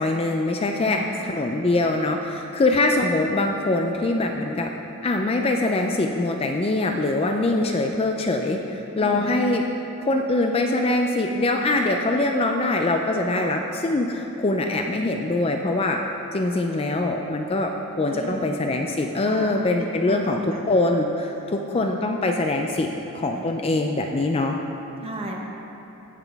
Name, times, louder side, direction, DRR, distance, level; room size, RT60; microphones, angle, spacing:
voice 1, 0.0-4.7 5.0-9.6 10.0-16.0 16.3-17.7 18.0-20.4 20.7-22.9 23.1-24.6, left 2 dB, 25° left, 3 dB, 0.4 m, -23 dB
voice 2, 0.8-1.1 9.0-9.3 13.3-13.5 18.1-18.4 18.7-18.8 19.2-20.6 21.4-21.7 23.3-23.5 25.0-25.3, right 1 dB, 25° right, -1 dB, 1.0 m, -36 dB
16.0 x 5.9 x 3.4 m, 3.0 s
head